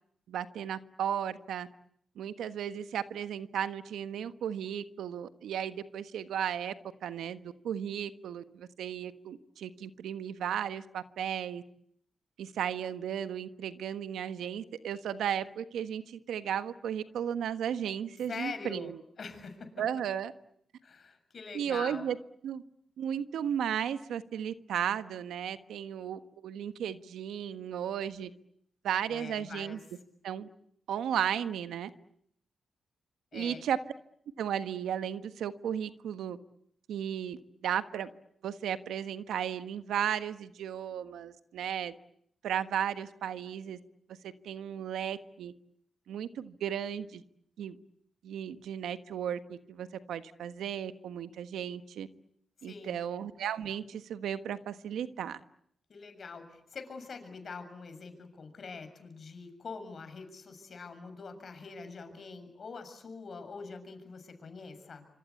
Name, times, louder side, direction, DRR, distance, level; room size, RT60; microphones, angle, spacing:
voice 1, 0.3-1.7 2.2-6.7 7.0-11.6 12.4-19.0 19.8-20.3 21.5-22.2 22.4-22.6 23.0-28.3 28.8-29.8 30.2-30.5 30.9-31.9 33.3-33.8 34.4-36.4 36.9-38.1 38.4-41.9 42.4-43.8 44.2-45.5 46.1-47.2 47.6-47.8 48.2-52.1 52.6-55.4, right 9 dB, 90° right, 11 dB, 1.3 m, -35 dB
voice 2, 18.3-19.7 20.8-22.1 29.1-29.8 33.3-33.6 52.6-53.0 55.9-65.0, left 4 dB, 55° left, 8 dB, 7.1 m, -44 dB
26.5 x 26.0 x 8.5 m, 0.71 s
cardioid pair, 85°, 0 cm